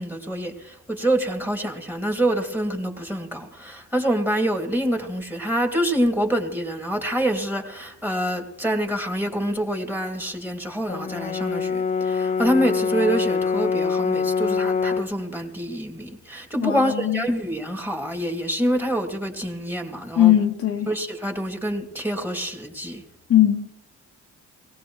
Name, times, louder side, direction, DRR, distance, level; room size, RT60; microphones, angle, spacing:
voice 1, 0.0-20.3 20.9-23.0, right 1 dB, 5° right, 2.5 m, -26 dB
Brass instrument, 10.9-15.2, left 5 dB, 25° left, 0.5 m, -24 dB
voice 2, 16.6-17.2 20.2-20.9 23.3-23.7, left 12 dB, 50° left, 0.9 m, -19 dB
18.5 x 17.0 x 3.2 m
cardioid pair, 90°, 30 cm